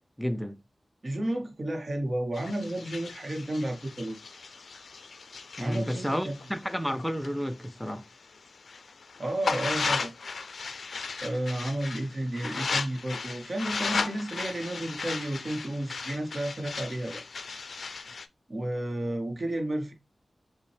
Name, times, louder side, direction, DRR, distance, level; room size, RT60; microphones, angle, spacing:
voice 1, 0.2-0.6 5.6-8.0, equal, 5° left, 0.4 m, -31 dB
voice 2, 1.0-4.2 5.6-6.4 9.2-10.1 11.2-17.2 18.5-19.9, right 1 dB, 45° right, 0.9 m, -32 dB
sound 1, 2.3-8.0 8.4-18.3, left 4 dB, 80° left, 0.3 m, -36 dB
5.0 x 2.1 x 3.2 m
wide cardioid pair, 70°, 0 cm